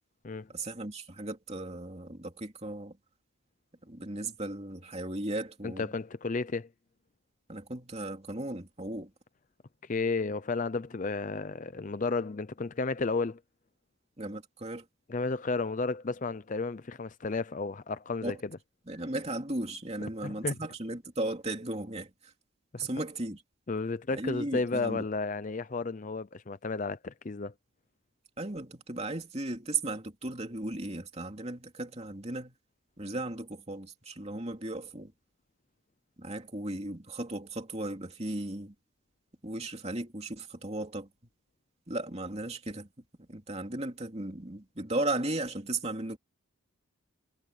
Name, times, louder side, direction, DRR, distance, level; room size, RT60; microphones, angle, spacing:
voice 1, 0.5-3.0 3.8-5.9 7.5-9.1 14.2-14.8 18.2-18.4 18.9-22.3 22.8-23.4 24.1-25.1 28.4-32.5 33.0-35.1 36.2-38.7 39.4-41.1 41.9-42.9 43.3-46.2, right 2 dB, 30° right, 2.9 m, -36 dB
voice 2, 5.6-6.7 9.8-13.4 15.1-18.5 20.2-20.6 22.7-22.9 23.7-27.5, left 3 dB, 35° left, 0.5 m, -32 dB
head